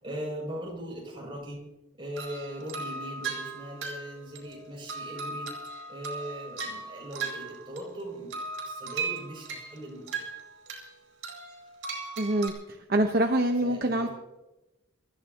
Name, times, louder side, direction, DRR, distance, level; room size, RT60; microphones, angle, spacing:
voice 1, 0.0-1.6 1.9-5.5 5.9-8.3 8.6-10.3 13.6-14.1, equal, 25° right, -2 dB, 6.8 m, -39 dB
sound 1, 2.2-8.0 8.3-10.9 11.2-12.5, right 4 dB, 70° right, 4.8 m, -37 dB
voice 2, 12.2-14.1, right 1 dB, 50° right, 4 dB, 1.0 m, -25 dB
26.0 x 15.0 x 3.0 m, 1.0 s
head